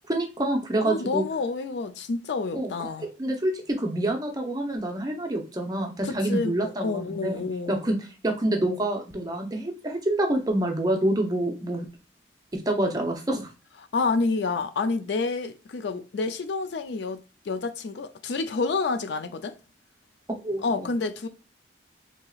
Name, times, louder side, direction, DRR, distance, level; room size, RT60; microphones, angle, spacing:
voice 1, 0.1-1.2 2.5-2.7 3.0-11.9 12.5-13.5 20.3-20.9, right 1 dB, 20° right, 0.6 m, -27 dB
voice 2, 0.8-3.1 6.0-7.8 13.9-19.6 20.6-21.3, left 4 dB, 65° left, 0.4 m, -29 dB
4.5 x 2.8 x 2.3 m
head